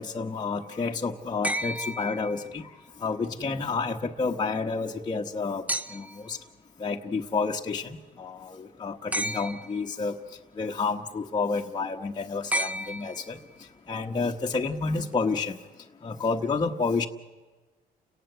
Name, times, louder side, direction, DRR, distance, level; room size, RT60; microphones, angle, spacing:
voice 1, 0.0-2.6 3.0-5.6 5.9-6.4 6.8-10.2 10.6-13.4 13.9-15.6 16.0-17.1, left 4 dB, 25° left, 0 dB, 1.1 m, -30 dB
sound 1, 1.4-2.8 5.7-6.3 9.1-9.9 12.5-13.6 15.1-15.2, right 1 dB, 10° right, 0.7 m, -32 dB
30.0 x 18.0 x 8.0 m, 1.3 s
cardioid pair, 110°, 17 cm